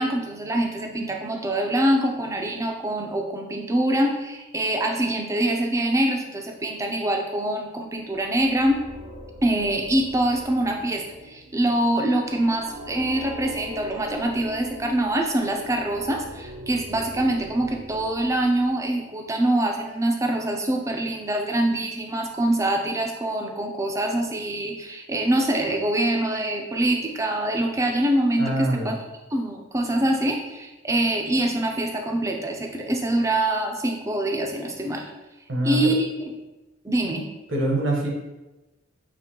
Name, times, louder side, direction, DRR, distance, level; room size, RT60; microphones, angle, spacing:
voice 1, 0.0-8.8 9.4-28.9 29.3-35.0 35.6-36.3 36.8-37.2, right 1 dB, 15° right, 2 dB, 0.4 m, -24 dB
sound 1, 8.0-19.2, equal, 90° right, 1.0 m, -42 dB
voice 2, 28.4-29.0 35.5-35.9 37.5-38.1, right 1 dB, 70° right, -1 dB, 1.0 m, -24 dB
5.1 x 3.0 x 2.8 m, 1.1 s
head